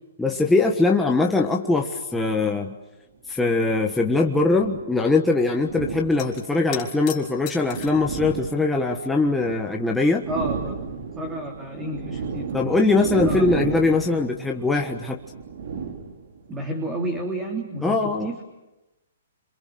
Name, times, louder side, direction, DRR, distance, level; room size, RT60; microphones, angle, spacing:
voice 1, 0.2-2.7 3.3-10.3 12.5-15.2 17.8-18.3, left 3 dB, 5° left, 0 dB, 1.4 m, -21 dB
sound 1, 3.5-4.9 5.5-6.7 7.3-9.7 10.0-16.6, right 5 dB, 60° right, 3.6 m, -33 dB
sound 2, 6.1-8.1 8.9-9.7 10.0-10.1 11.5-11.6 11.9-12.9 16.5-16.7 17.0-17.2, left 11 dB, 35° left, 3.7 m, -40 dB
voice 2, 10.3-13.7 16.5-18.4, right 1 dB, 15° right, 2 dB, 3.3 m, -32 dB
27.0 x 27.0 x 7.8 m, 1.0 s
hypercardioid pair, 150°, 0 cm